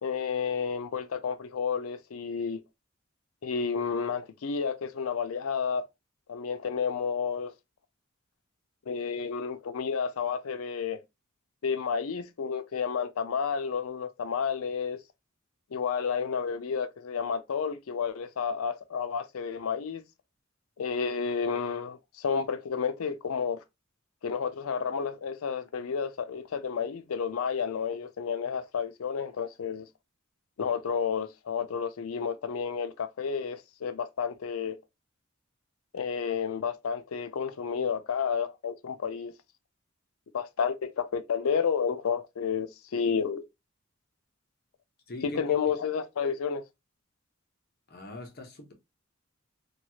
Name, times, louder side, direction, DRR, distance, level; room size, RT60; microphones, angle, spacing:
voice 1, 0.0-2.6 3.4-5.8 6.3-7.5 8.9-11.0 11.6-15.0 15.7-20.0 20.8-23.6 24.2-29.9 30.6-34.8 35.9-39.3 40.3-43.5 45.2-46.6, left 6 dB, 80° left, 0.5 m, -31 dB
voice 2, 45.1-45.4 47.9-48.7, left 1 dB, 50° left, 0.8 m, -41 dB
3.0 x 2.3 x 2.8 m
head